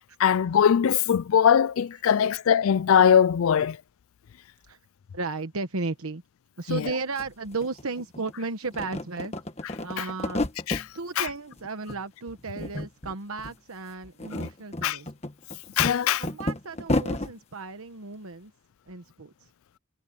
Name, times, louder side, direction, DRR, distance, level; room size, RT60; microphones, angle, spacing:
voice 1, 0.2-3.8 6.7-6.8 10.0-10.1 10.7-10.8 11.2-11.3 14.8-15.0 15.8-16.2, left 8 dB, 75° left, 0.4 m, -21 dB
voice 2, 5.1-6.2 6.6-9.3 9.8-10.4 10.9-15.1 16.2-18.5 18.9-19.5, right 3 dB, 80° right, 1.2 m, -34 dB
sound 1, 6.9-7.0 7.2-8.3 8.6-10.9 11.3-12.0 12.3-13.1 13.4-13.5 14.0-17.3, left 1 dB, 30° left, 1.5 m, -31 dB
head